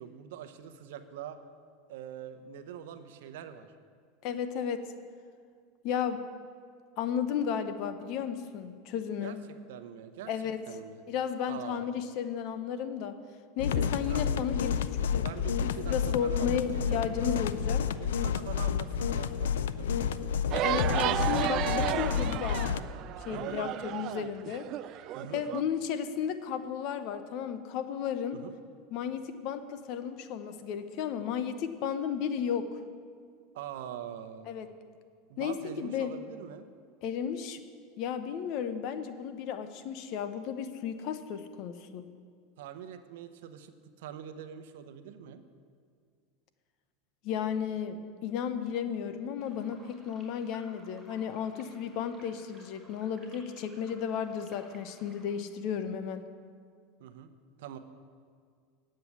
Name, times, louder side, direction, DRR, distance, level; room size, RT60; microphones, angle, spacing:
voice 1, 0.0-1.4 1.9-3.7 9.2-9.4 9.7-10.3 10.7-11.0 11.5-11.9 13.7-14.3 15.2-17.4 18.0-20.3 23.3-23.6 25.1-25.4 28.3-28.6 33.5-34.5 35.3-36.7 42.6-45.4 57.0-57.3 57.6-57.8, right 9 dB, 75° right, 9 dB, 0.8 m, -44 dB
voice 2, 4.2-4.8 5.8-6.2 7.0-9.4 10.3-10.6 11.1-13.1 13.6-15.2 15.6-17.8 20.6-22.7 23.2-24.7 25.2-28.4 28.9-32.7 34.5-34.7 35.4-36.1 37.0-37.6 38.0-42.0 47.2-56.2, left 8 dB, 55° left, 10 dB, 0.8 m, -34 dB
sound 1, 13.6-22.8, left 7 dB, 90° left, 0.4 m, -30 dB
sound 2, 20.5-25.6, right 13 dB, 45° right, 0.3 m, -33 dB
sound 3, 49.4-55.3, right 2 dB, 20° right, 3.3 m, -58 dB
9.5 x 7.6 x 7.3 m, 2.1 s
supercardioid pair, 125°, 0 cm